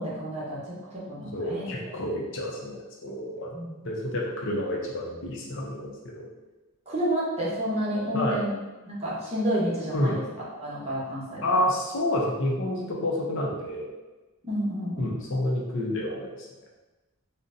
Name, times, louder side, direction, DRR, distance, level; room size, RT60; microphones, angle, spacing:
voice 1, 0.0-1.9 3.5-3.8 6.9-8.5 8.9-10.2 10.5-11.4 14.4-15.2, equal, 30° right, -7 dB, 0.8 m, -30 dB
voice 2, 1.3-3.6 3.8-6.3 8.1-8.4 9.9-10.2 11.4-13.9 15.0-16.5, left 1 dB, 55° left, -2 dB, 0.6 m, -29 dB
3.7 x 2.1 x 2.6 m, 1.1 s
head